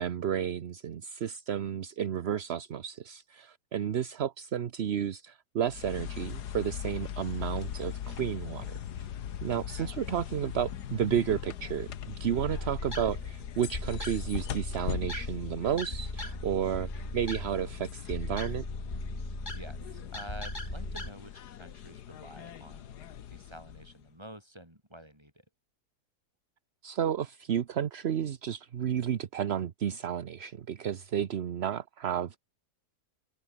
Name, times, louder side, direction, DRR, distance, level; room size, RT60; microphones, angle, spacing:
voice 1, 0.0-9.1 9.4-18.6 26.8-32.4, right 9 dB, 50° right, 0.9 m, -32 dB
sound 1, 5.6-24.1, left 10 dB, 80° left, 1.7 m, -40 dB
sound 2, 12.4-21.1, left 1 dB, 30° left, 5.7 m, -38 dB
voice 2, 19.5-23.0 23.3-25.4, right 1 dB, 15° right, 7.8 m, -49 dB
open air
omnidirectional pair, 1.7 m